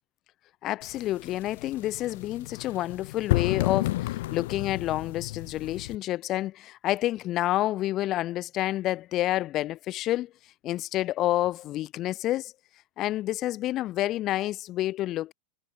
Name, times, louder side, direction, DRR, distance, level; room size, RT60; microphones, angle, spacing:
voice 1, 0.6-10.3 10.6-12.5 13.0-15.3, left 15 dB, 35° left, 1.1 m, -29 dB
sound 1, 0.8-6.0, left 17 dB, 55° left, 1.4 m, -31 dB
figure-of-eight pair, 90°, 0 cm